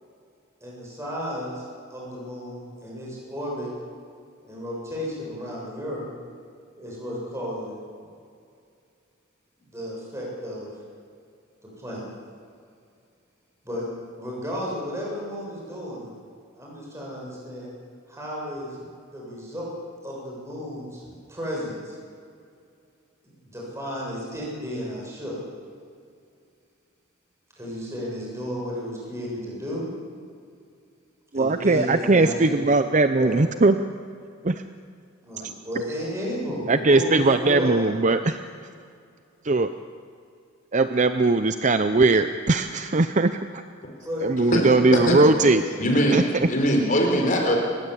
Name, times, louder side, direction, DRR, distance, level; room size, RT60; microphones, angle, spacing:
voice 1, 0.6-1.6 1.9-3.7 4.4-6.1 6.8-7.8 9.7-10.7 11.8-12.0 13.6-13.8 14.2-16.1 16.6-17.7 18.1-18.8 19.1-19.7 20.0-21.0 21.3-22.0 23.2-25.4 27.5-29.9 31.3-32.7 33.2-33.4 35.2-38.2 44.0-45.6, equal, 15° right, -4 dB, 7.6 m, -33 dB
voice 2, 31.3-33.8 34.4-34.6 35.4-35.5 36.7-38.4 39.4-39.7 40.7-43.6 44.2-45.6 46.1-46.2, right 3 dB, 35° right, 9 dB, 0.7 m, -20 dB
voice 3, 44.5-45.3 45.8-46.2 46.5-47.6, equal, 40° left, 1 dB, 4.1 m, -21 dB
29.5 x 16.0 x 8.5 m, 2.4 s
head